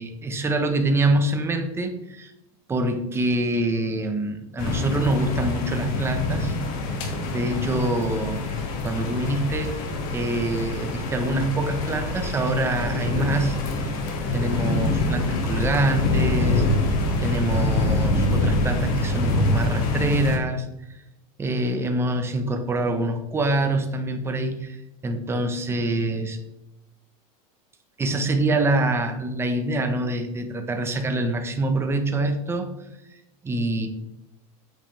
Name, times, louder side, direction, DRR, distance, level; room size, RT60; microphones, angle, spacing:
voice 1, 0.0-2.3 2.7-6.6 7.3-8.4 8.8-14.0 14.3-16.7 17.2-20.7 21.4-24.8 25.0-26.4 28.0-32.7 33.1-33.2 33.4-33.9, right 1 dB, 15° right, 5 dB, 1.1 m, -25 dB
sound 1, 4.6-20.4, left 2 dB, 50° left, 2.2 m, -25 dB
9.2 x 7.8 x 3.4 m, 0.90 s
supercardioid pair, 150°, 19 cm